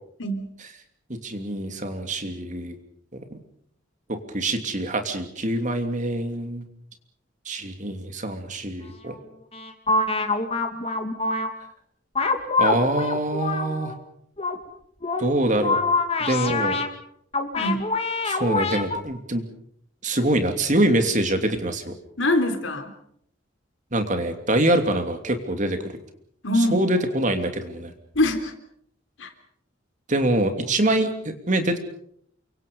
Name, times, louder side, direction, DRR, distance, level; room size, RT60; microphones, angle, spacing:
voice 1, 0.2-0.5 17.6-17.9 22.2-22.9 26.4-26.8 28.2-28.5 29.2-29.3, left 1 dB, 80° left, 7 dB, 3.4 m, -23 dB
voice 2, 1.2-2.7 3.1-3.2 4.1-6.6 7.5-9.1 12.6-13.9 15.2-15.8 16.3-16.8 18.2-19.5 20.0-21.9 23.9-25.8 26.5-27.9 30.1-31.8, right 1 dB, 40° right, 6 dB, 2.9 m, -24 dB
sound 1, 9.1-9.2 9.5-11.5 12.2-14.0 14.4-14.6 15.0-15.3 15.6-16.9 17.3-19.0, left 3 dB, 30° left, 2.4 m, -25 dB
28.5 x 24.5 x 5.5 m, 0.68 s
head